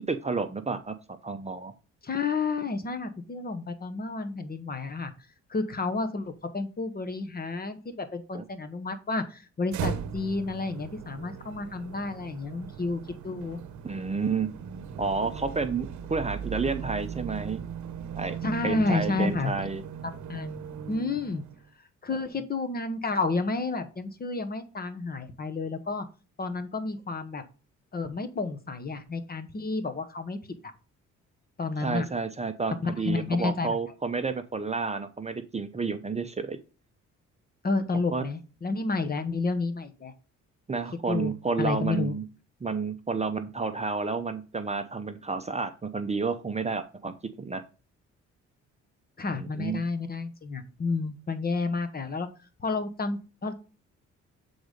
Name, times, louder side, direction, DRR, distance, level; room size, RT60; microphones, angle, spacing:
voice 1, 0.1-0.9 1.2-1.7 8.3-8.4 13.8-14.5 15.0-17.6 18.1-18.4 18.6-19.8 31.8-36.6 38.1-38.2 40.7-42.2 42.6-47.6 49.4-49.8, right 4 dB, 20° right, 8 dB, 0.7 m, -30 dB
voice 2, 2.0-5.1 5.5-13.6 18.4-19.5 20.3-20.6 20.9-21.4 22.0-26.1 26.4-27.4 27.9-30.4 31.6-32.1 32.8-33.7 37.6-40.1 41.1-41.3 41.6-42.1 49.2-52.3 52.6-53.5, left 3 dB, 30° left, 9 dB, 1.1 m, -30 dB
sound 1, 9.7-21.7, right 8 dB, 70° right, 0.9 m, -38 dB
7.9 x 4.0 x 5.1 m, 0.34 s
cardioid pair, 90°, 30 cm